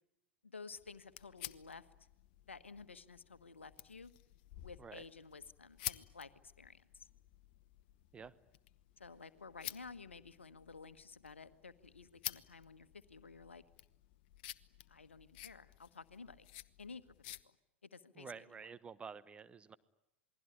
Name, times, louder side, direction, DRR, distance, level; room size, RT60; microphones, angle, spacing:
voice 1, 0.4-1.9 2.5-4.1 4.6-6.3 6.6-7.1 9.0-13.6 14.9-16.5 16.8-17.5 17.8-18.4, left 4 dB, 80° left, 13 dB, 1.4 m, -53 dB
sound 1, 0.7-17.4, left 15 dB, 50° left, 1.0 m, -51 dB
voice 2, 18.2-19.8, right 5 dB, 15° right, 15 dB, 1.1 m, -50 dB
28.0 x 21.0 x 9.8 m, 0.81 s
figure-of-eight pair, 90°, 6 cm